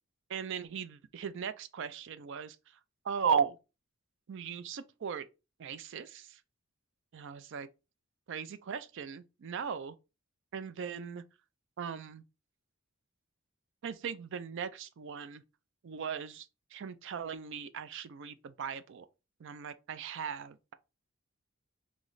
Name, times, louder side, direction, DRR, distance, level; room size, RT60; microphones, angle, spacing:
voice 1, 0.3-2.8 3.0-3.6 4.3-5.3 5.6-6.4 7.1-7.7 8.3-10.0 10.5-11.2 11.8-12.2 13.8-15.4 15.8-19.1 19.4-20.7, right 7 dB, 60° right, 0.4 m, -37 dB
3.1 x 3.0 x 3.8 m
head